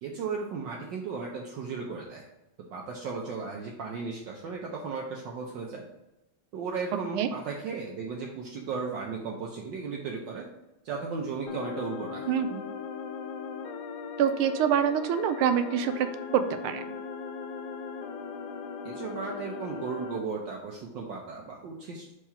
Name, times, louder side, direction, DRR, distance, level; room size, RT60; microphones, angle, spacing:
voice 1, 0.0-2.3 2.7-5.8 6.5-10.5 10.8-12.2 18.8-22.1, right 5 dB, 70° right, -1 dB, 1.3 m, -35 dB
sound 1, 11.5-20.2, left 5 dB, 70° left, 1.1 m, -38 dB
voice 2, 12.3-12.6 14.2-16.1 16.3-16.8, right 9 dB, 85° right, 9 dB, 1.5 m, -25 dB
4.7 x 3.6 x 5.6 m, 0.90 s
omnidirectional pair, 2.3 m